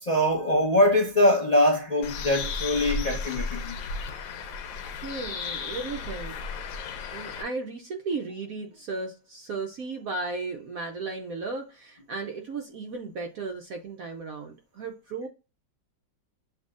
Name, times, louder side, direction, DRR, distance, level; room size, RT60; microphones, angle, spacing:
voice 1, 0.0-3.8, left 1 dB, 30° left, 0.7 m, -23 dB
Bird, 2.0-7.4, left 4 dB, 90° left, 1.5 m, -34 dB
voice 2, 5.0-6.5 7.1-15.3, right 3 dB, 65° right, 0.9 m, -35 dB
8.0 x 2.7 x 2.5 m
omnidirectional pair, 2.0 m